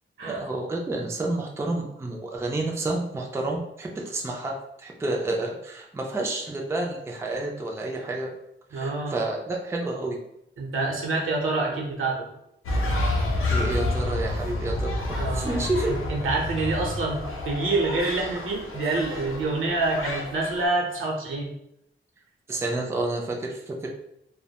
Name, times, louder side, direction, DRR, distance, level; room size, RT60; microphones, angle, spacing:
voice 1, 0.2-8.3 8.7-10.2 13.5-14.9 15.3-15.9 22.5-23.9, right 2 dB, 15° right, 0 dB, 0.3 m, -29 dB
voice 2, 8.7-9.1 10.6-12.3 15.1-21.5, right 3 dB, 75° right, -2 dB, 0.7 m, -27 dB
sound 1, 12.6-20.7, left 2 dB, 90° left, 0.5 m, -29 dB
2.2 x 2.1 x 2.8 m, 0.79 s
wide cardioid pair, 120°, 21 cm